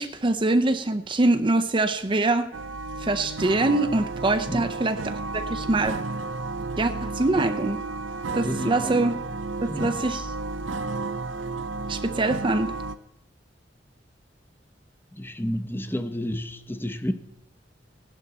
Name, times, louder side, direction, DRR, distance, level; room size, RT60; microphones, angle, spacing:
voice 1, 0.0-2.5 3.0-6.0 6.8-7.8 8.3-9.1 9.6-10.2 11.9-12.7, right 2 dB, 25° right, 0.6 m, -24 dB
sound 1, 2.5-13.0, right 3 dB, 85° right, 0.8 m, -32 dB
voice 2, 8.4-9.3 9.6-10.0 15.1-17.1, equal, 10° left, 0.8 m, -31 dB
17.0 x 11.5 x 4.1 m
head